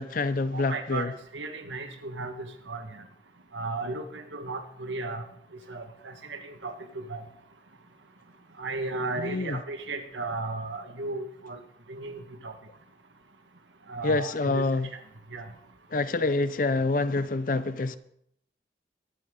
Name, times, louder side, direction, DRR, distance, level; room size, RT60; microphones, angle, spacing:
voice 1, 0.0-1.1 9.2-9.6 14.0-14.9 15.9-18.0, left 3 dB, 45° left, 0.5 m, -27 dB
voice 2, 0.5-2.8 3.5-5.2 5.7-6.7 7.1-7.2 8.6-11.6 11.9-12.5 13.9-14.6 15.3-15.4, right 3 dB, 80° right, 1.6 m, -35 dB
23.0 x 9.6 x 3.8 m
head